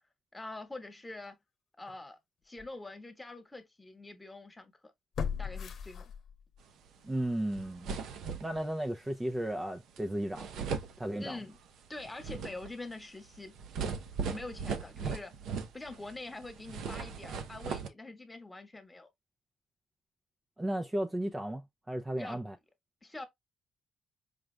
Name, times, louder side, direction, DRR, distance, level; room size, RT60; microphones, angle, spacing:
voice 1, 0.3-1.4 1.8-2.2 2.4-4.9 5.4-6.0 11.2-11.6 11.9-13.5 14.3-15.3 15.7-19.1 22.2-22.4 23.0-23.3, left 2 dB, 15° left, 1.2 m, -45 dB
sound 1, 1.9-2.0 2.6-2.7 5.1-6.6 7.0-7.1, left 7 dB, 60° left, 0.9 m, -37 dB
voice 2, 7.0-7.9 8.4-10.5 11.0-11.4 20.6-22.6, right 1 dB, 15° right, 0.5 m, -34 dB
sound 2, 7.2-7.3 7.5-8.7 10.0-10.1 10.3-11.6 12.0-16.1 16.4-17.9, right 5 dB, 80° right, 0.7 m, -38 dB
5.0 x 2.3 x 3.2 m
cardioid pair, 90°, 0 cm